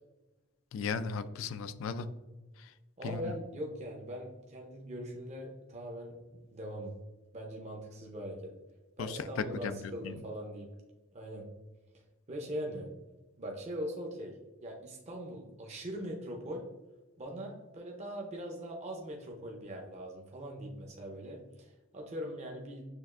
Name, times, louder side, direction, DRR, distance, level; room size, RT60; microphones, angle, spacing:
voice 1, 0.7-2.1 2.6-2.7 3.0-3.3 9.0-10.2, left 5 dB, 70° left, 12 dB, 0.3 m, -36 dB
voice 2, 3.0-6.1 6.5-6.9 7.3-8.5 9.0-10.7 11.1-11.5 12.3-12.9 13.4-14.3 14.6-16.6 17.2-22.9, equal, 35° right, 0 dB, 0.6 m, -41 dB
6.4 x 2.4 x 2.4 m, 1.1 s
head